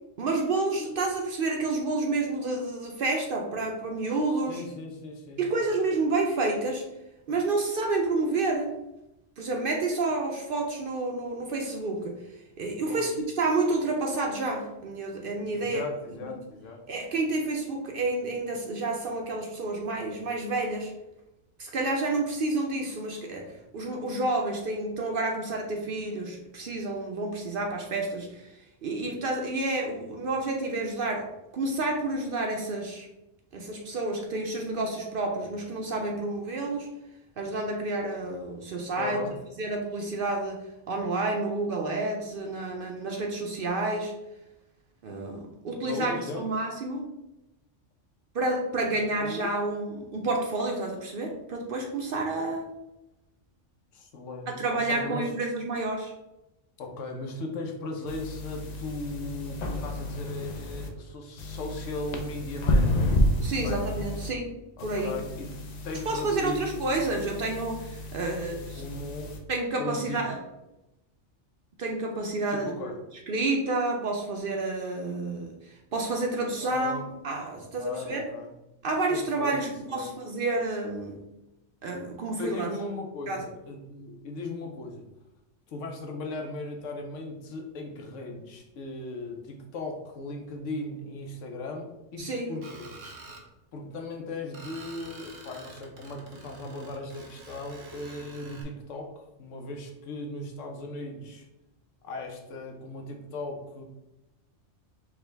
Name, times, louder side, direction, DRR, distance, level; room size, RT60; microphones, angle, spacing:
voice 1, 0.2-4.6 5.4-6.8 7.3-8.7 9.4-12.2 12.6-15.8 16.9-20.9 21.6-23.5 23.7-28.5 28.8-31.3 31.5-33.1 33.5-36.9 37.4-39.2 39.6-40.6 40.9-44.1 45.0-47.1 48.3-52.6 54.5-56.1 63.4-64.5 64.8-65.2 66.1-68.8 69.5-70.4 71.8-72.9 73.3-78.2 78.8-81.2 81.8-82.7 83.3-83.4 92.2-92.5, right 2 dB, 60° right, 1 dB, 0.6 m, -29 dB
voice 2, 4.5-5.6 12.9-13.1 15.5-16.8 39.0-39.3 45.7-46.4 48.9-49.5 53.9-55.3 56.8-63.1 63.5-64.0 64.8-65.5 65.8-66.7 68.7-69.3 69.8-70.2 72.5-73.0 76.6-77.0 77.8-78.5 79.1-80.1 82.4-85.0 85.7-93.0 93.7-101.5 102.0-103.8, left 2 dB, 80° left, 2 dB, 1.1 m, -38 dB
sound 1, 58.1-60.9 61.4-64.3 64.8-69.4, left 1 dB, 60° left, 0.4 m, -31 dB
Screech, 92.6-93.4 94.5-98.6, right 3 dB, 90° right, 1.2 m, -47 dB
4.8 x 2.2 x 3.3 m, 0.94 s
omnidirectional pair, 1.3 m